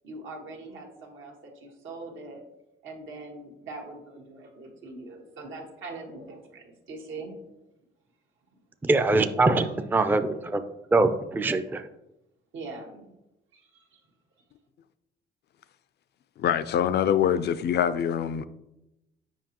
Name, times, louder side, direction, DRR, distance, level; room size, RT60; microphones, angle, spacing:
voice 1, 0.0-2.4 2.8-7.4 9.6-9.7 12.5-13.1 13.5-14.0, right 3 dB, 80° right, 1.5 m, -42 dB
voice 2, 8.8-10.6 10.9-11.9, right 2 dB, 10° right, 0.4 m, -23 dB
voice 3, 16.4-18.5, left 9 dB, 55° left, 0.4 m, -24 dB
7.3 x 5.2 x 2.9 m
cardioid pair, 90°, 20 cm